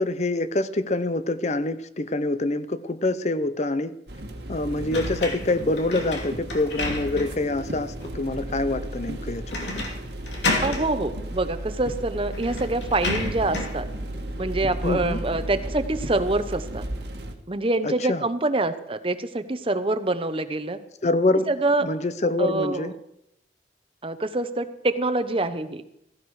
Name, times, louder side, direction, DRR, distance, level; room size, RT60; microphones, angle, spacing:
voice 1, 0.0-3.9 4.5-9.9 14.8-15.2 17.8-18.3 21.0-21.5 21.8-22.9, left 2 dB, 40° left, 13 dB, 0.7 m, -26 dB
sound 1, 4.1-17.3, right 1 dB, 75° right, 1.6 m, -34 dB
sound 2, 4.9-7.5 8.0-8.1 9.5-10.0 10.2-10.9 11.9-12.0 12.3-13.8, left 2 dB, 85° left, 2.8 m, -30 dB
voice 2, 10.6-13.9 14.4-16.8 17.5-20.8 21.5-21.9 22.4-22.9 24.0-25.8, right 2 dB, 30° right, 11 dB, 0.8 m, -25 dB
15.5 x 15.0 x 4.9 m, 0.79 s
head